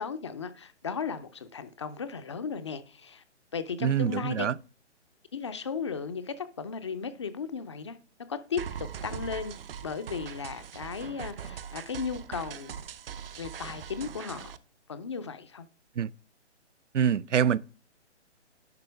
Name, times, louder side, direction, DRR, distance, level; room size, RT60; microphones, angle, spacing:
voice 1, 0.0-3.2 3.5-4.5 5.3-8.0 8.3-9.6 9.8-12.8 13.4-14.5 14.9-15.7, left 6 dB, 25° left, 0.5 m, -35 dB
voice 2, 3.8-4.5 16.0-16.1 16.9-17.6, right 8 dB, 90° right, 0.6 m, -25 dB
sound 1, 8.6-14.6, right 8 dB, 55° right, 0.7 m, -41 dB
10.5 x 5.5 x 3.3 m
hypercardioid pair, 150°, 35 cm